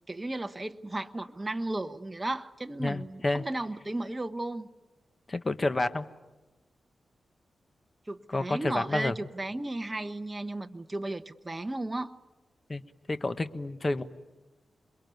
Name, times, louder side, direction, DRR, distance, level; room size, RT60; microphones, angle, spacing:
voice 1, 0.0-4.7 8.1-12.1, right 2 dB, 20° right, 1.0 m, -34 dB
voice 2, 2.8-3.4 5.3-6.1 8.3-9.1 12.7-12.8 13.1-14.0, left 2 dB, 35° left, 1.3 m, -29 dB
28.0 x 22.5 x 9.4 m
wide cardioid pair, 100°, 0 cm